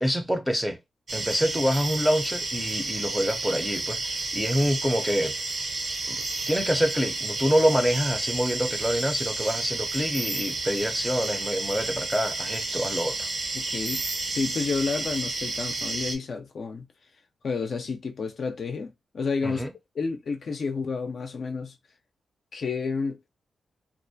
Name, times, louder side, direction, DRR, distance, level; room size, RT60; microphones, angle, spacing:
voice 1, 0.0-0.8 1.1-5.4 6.1-13.3 19.4-19.7, equal, ahead, 0.5 m, -26 dB
sound 1, 1.1-16.2, right 2 dB, 55° right, 0.7 m, -31 dB
voice 2, 13.5-14.0 14.3-16.8 17.4-19.7 20.0-21.7 22.5-23.2, left 4 dB, 60° left, 0.4 m, -30 dB
2.4 x 2.1 x 2.6 m
cardioid pair, 85°, 0 cm